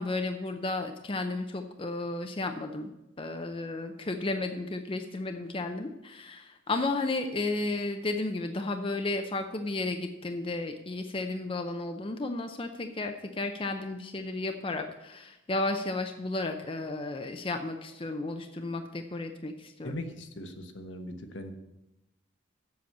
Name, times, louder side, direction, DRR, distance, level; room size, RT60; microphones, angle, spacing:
voice 1, 0.0-2.9 3.2-19.9, left 2 dB, 30° left, 6 dB, 0.6 m, -33 dB
voice 2, 19.8-21.5, left 1 dB, 75° left, 6 dB, 1.2 m, -39 dB
7.8 x 6.9 x 8.3 m, 0.92 s
head